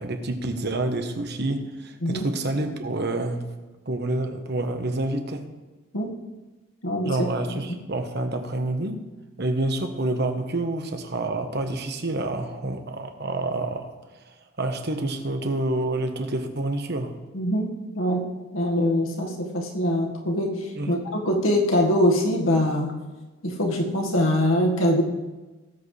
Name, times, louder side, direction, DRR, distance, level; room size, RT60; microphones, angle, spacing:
voice 1, 0.0-3.6 3.8-5.5 7.0-9.1 9.4-13.9 14.2-17.1 20.8-21.0, right 2 dB, 50° right, 6 dB, 1.2 m, -28 dB
voice 2, 6.8-7.3 7.7-7.8 17.3-18.3 18.5-20.5 20.9-22.9 23.4-25.0, equal, 75° left, 1 dB, 1.9 m, -23 dB
18.0 x 8.0 x 3.4 m, 1.2 s
head